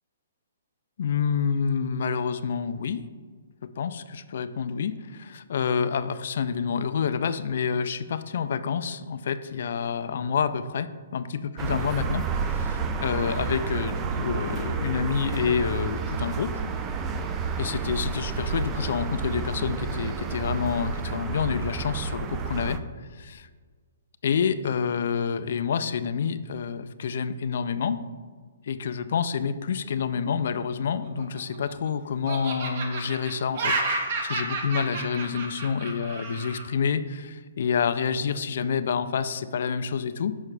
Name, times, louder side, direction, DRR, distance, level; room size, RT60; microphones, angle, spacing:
voice 1, 1.0-3.0 3.6-16.6 17.6-23.5 24.2-28.0 28.6-40.4, left 6 dB, 60° left, 12 dB, 0.3 m, -28 dB
sound 1, 11.6-22.8, right 5 dB, 20° right, 0.3 m, -30 dB
Laughter, 31.0-31.9 32.3-36.6, right 3 dB, 45° right, 1.0 m, -31 dB
6.2 x 5.5 x 3.3 m, 1.5 s
hypercardioid pair, 155°, 0 cm